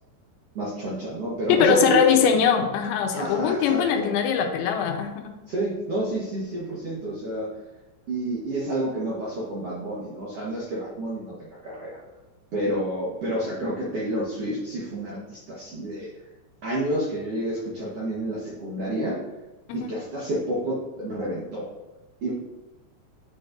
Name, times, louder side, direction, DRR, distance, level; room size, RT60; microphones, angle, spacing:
voice 1, 0.6-2.0 3.2-4.1 5.5-7.5 8.1-12.0 12.5-16.1 16.6-19.2 19.7-21.7 22.2-22.3, right 1 dB, 60° right, -6 dB, 1.6 m, -29 dB
voice 2, 1.5-5.3 19.8-19.9, left 7 dB, 90° left, 4 dB, 2.6 m, -21 dB
9.1 x 5.1 x 2.6 m, 1.1 s
omnidirectional pair, 4.4 m